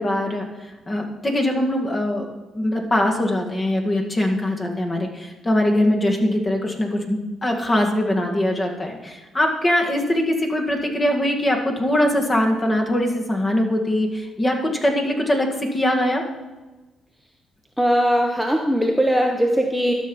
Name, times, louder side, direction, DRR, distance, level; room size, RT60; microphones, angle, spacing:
voice 1, 0.0-16.2, left 1 dB, 25° left, 2 dB, 1.8 m, -22 dB
voice 2, 17.8-19.9, equal, ahead, 1 dB, 0.9 m, -20 dB
12.5 x 6.1 x 5.4 m, 1.2 s
cardioid pair, 90°, 0 cm